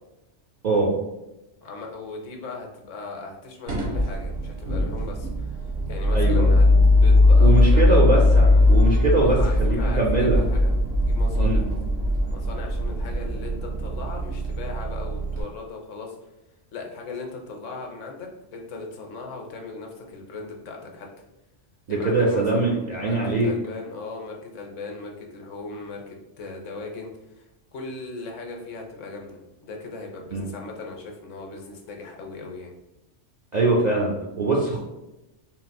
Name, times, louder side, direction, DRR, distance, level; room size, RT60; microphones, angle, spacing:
voice 1, 0.6-1.0 6.1-6.5 7.4-10.4 11.4-11.6 21.9-23.5 30.3-30.4 33.5-34.8, right 3 dB, 60° right, -2 dB, 0.4 m, -22 dB
voice 2, 1.6-6.7 7.0-8.2 8.5-8.7 9.1-10.7 11.0-11.6 12.3-16.2 16.7-21.1 21.9-32.7, left 3 dB, 85° left, 1 dB, 1.0 m, -38 dB
sound 1, 3.7-15.4, left 2 dB, 80° right, 1.2 m, -20 dB
3.7 x 2.5 x 2.2 m, 0.96 s
omnidirectional pair, 1.2 m